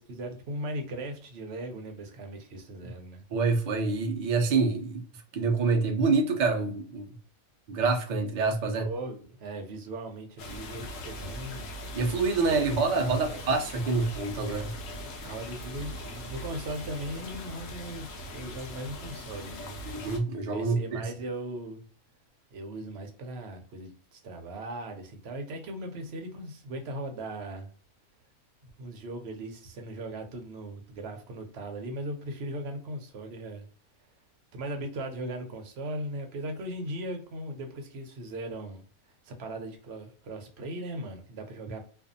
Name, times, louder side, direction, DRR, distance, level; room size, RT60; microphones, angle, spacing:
voice 1, 0.0-3.2 8.6-11.7 12.5-13.4 15.2-19.8 20.5-21.8 22.5-27.7 28.6-33.6 34.5-38.8 39.2-41.8, right 1 dB, 60° right, 0.7 m, -38 dB
voice 2, 3.3-5.0 5.3-7.1 7.7-8.9 11.9-14.7 19.9-21.0, right 4 dB, 80° right, 0.4 m, -26 dB
sound 1, 10.4-20.2, left 1 dB, 70° left, 1.0 m, -40 dB
2.6 x 2.3 x 2.5 m
omnidirectional pair, 1.5 m